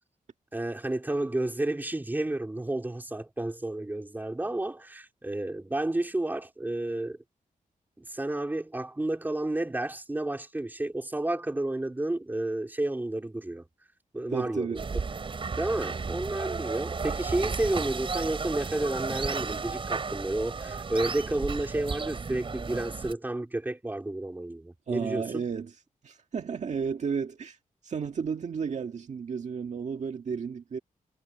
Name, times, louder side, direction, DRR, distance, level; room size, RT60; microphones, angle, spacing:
voice 1, 0.5-7.2 8.0-13.6 14.1-14.8 15.1-15.2 15.5-25.5, right 2 dB, 15° right, 4.1 m, -31 dB
voice 2, 14.3-14.8 24.9-25.8 26.0-27.6 27.8-30.8, right 6 dB, 55° right, 1.8 m, -33 dB
sound 1, 14.7-23.1, right 4 dB, 40° right, 5.6 m, -33 dB
wide cardioid pair, 165°, 14 cm